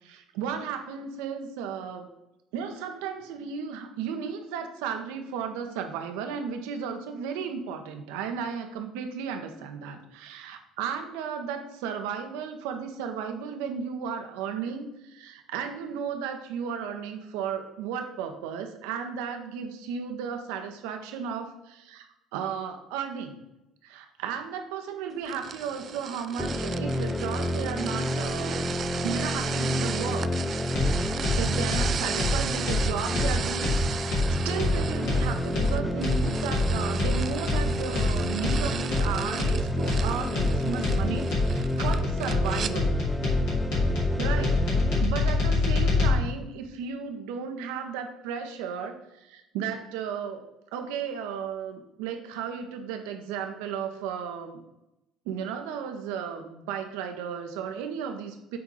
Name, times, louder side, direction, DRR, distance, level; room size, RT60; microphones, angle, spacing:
voice 1, 0.0-2.1 2.5-22.1 22.3-23.4 23.8-28.8 29.0-30.3 31.4-42.9 44.2-50.4 50.7-54.6 55.2-58.6, right 7 dB, 70° right, 6 dB, 0.9 m, -34 dB
sound 1, 25.3-42.7, right 7 dB, 45° right, 0.4 m, -36 dB
sound 2, 26.4-45.0, left 1 dB, ahead, 0.8 m, -31 dB
sound 3, 30.7-46.1, left 2 dB, 65° left, 2.6 m, -26 dB
7.8 x 3.7 x 5.4 m, 0.92 s
hypercardioid pair, 55°, 0 cm